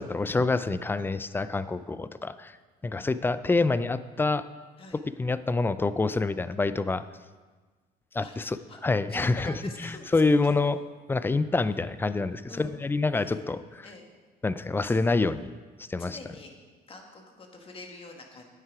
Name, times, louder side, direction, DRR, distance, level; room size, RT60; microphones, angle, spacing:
voice 1, 0.0-2.6 2.8-4.5 4.9-7.1 8.1-9.5 9.8-10.8 11.1-13.9 14.4-15.5 15.8-16.2, left 3 dB, 15° left, 14 dB, 0.4 m, -27 dB
voice 2, 9.1-10.2 12.5-12.8 13.1-14.1 14.8-15.0 16.0-16.5 16.9-18.4, left 3 dB, 35° left, 2 dB, 1.7 m, -46 dB
9.4 x 8.9 x 4.8 m, 1.4 s
cardioid pair, 110°, 17 cm